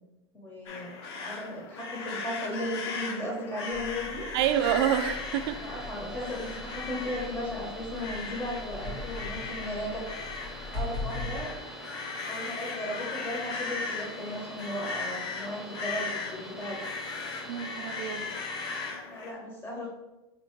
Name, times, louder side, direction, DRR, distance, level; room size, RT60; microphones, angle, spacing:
voice 1, 0.3-0.9 1.2-4.3 5.4-10.0 10.7-11.5 12.3-16.9 19.1-19.9, left 1 dB, 15° left, -3 dB, 1.1 m, -36 dB
sound 1, 0.7-19.3, left 4 dB, 70° left, 0.7 m, -38 dB
sound 2, 3.7-11.4, left 2 dB, 85° left, 1.4 m, -41 dB
voice 2, 4.3-5.7 17.5-18.3, right 10 dB, 70° right, 11 dB, 0.4 m, -28 dB
sound 3, 4.4-18.9, right 1 dB, 5° right, 0.6 m, -45 dB
4.1 x 3.3 x 3.1 m, 1.0 s
supercardioid pair, 115°, 14 cm